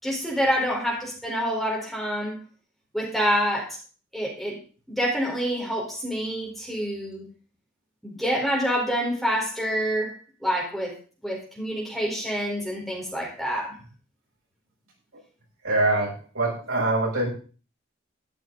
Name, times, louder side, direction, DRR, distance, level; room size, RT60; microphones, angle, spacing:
voice 1, 0.0-2.4 2.9-3.8 4.1-4.6 4.9-7.2 8.0-10.9 11.2-13.8, equal, ahead, -3 dB, 4.5 m, -27 dB
voice 2, 15.6-17.3, right 2 dB, 85° right, -4 dB, 7.7 m, -24 dB
13.5 x 12.5 x 4.1 m, 0.38 s
head